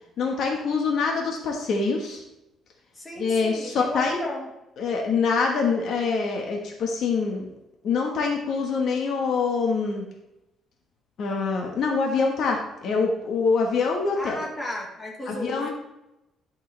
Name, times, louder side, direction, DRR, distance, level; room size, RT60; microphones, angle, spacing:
voice 1, 0.2-2.2 3.2-4.2 4.8-7.5 7.8-10.0 11.2-14.4 15.3-15.7, left 4 dB, 55° left, 1 dB, 1.3 m, -25 dB
voice 2, 2.9-4.5 14.2-15.7, left 1 dB, 15° left, -2 dB, 1.9 m, -34 dB
11.5 x 6.7 x 3.3 m, 0.91 s
cardioid pair, 155°, 0 cm